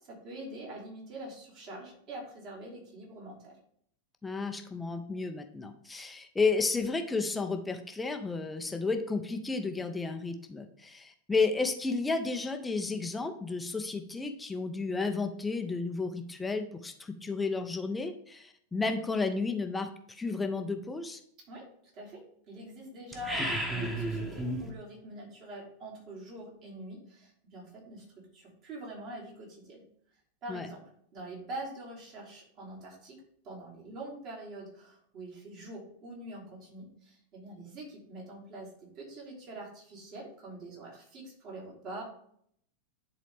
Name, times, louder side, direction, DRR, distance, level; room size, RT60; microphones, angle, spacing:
voice 1, 0.0-3.6 21.5-21.7 21.9-29.8 30.4-30.8 31.1-42.0, right 1 dB, 40° right, -3 dB, 3.3 m, -45 dB
voice 2, 4.2-21.2 30.5-30.7, left 4 dB, 10° left, 6 dB, 0.7 m, -32 dB
sound 1, 23.1-24.7, right 1 dB, 10° right, 1.5 m, -32 dB
10.0 x 4.0 x 3.5 m, 0.66 s
figure-of-eight pair, 90°, 0 cm